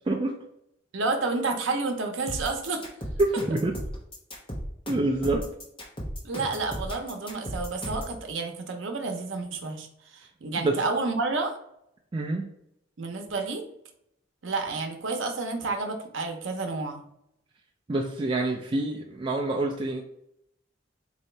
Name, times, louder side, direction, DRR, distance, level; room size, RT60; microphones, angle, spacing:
voice 1, 0.9-2.8 6.2-9.9 10.1-11.5 13.0-13.6 14.4-17.0, right 3 dB, 85° right, 5 dB, 0.7 m, -30 dB
sound 1, 2.3-8.2, equal, 25° left, 1.0 m, -35 dB
voice 2, 3.2-3.7 4.9-5.5 10.6-10.8 12.1-12.5 17.9-20.0, right 2 dB, 25° right, 0 dB, 0.3 m, -26 dB
4.0 x 2.7 x 3.2 m, 0.75 s
head